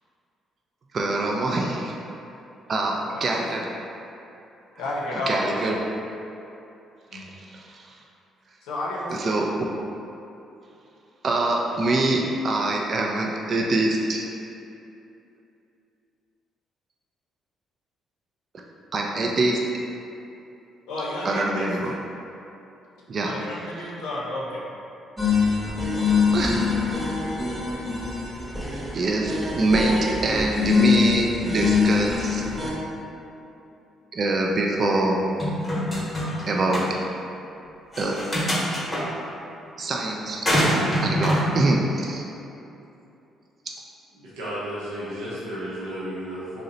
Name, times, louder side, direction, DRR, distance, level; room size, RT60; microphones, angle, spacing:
voice 1, 0.9-1.9 2.7-3.6 5.1-5.8 7.1-7.9 9.1-9.5 11.2-14.3 18.9-19.6 21.2-21.9 23.1-23.4 26.0-27.0 28.9-32.4 34.1-35.2 36.5-36.9 38.0-38.2 39.8-40.5 41.0-42.2, right 2 dB, 50° right, -1 dB, 0.3 m, -24 dB
voice 2, 3.1-3.5 4.8-5.6 7.1-7.3 8.6-9.4 20.9-21.7 23.2-24.7, left 1 dB, 85° left, -4 dB, 0.5 m, -31 dB
sound 1, 25.2-32.7, left 5 dB, 5° right, 0.8 m, -24 dB
sound 2, 35.4-36.4 36.7-36.9 37.9-39.0 40.4-41.5, equal, 30° left, 0.8 m, -24 dB
voice 3, 44.2-46.6, equal, 85° right, -9 dB, 0.6 m, -33 dB
2.7 x 2.0 x 3.8 m, 2.8 s
supercardioid pair, 60°, 0 cm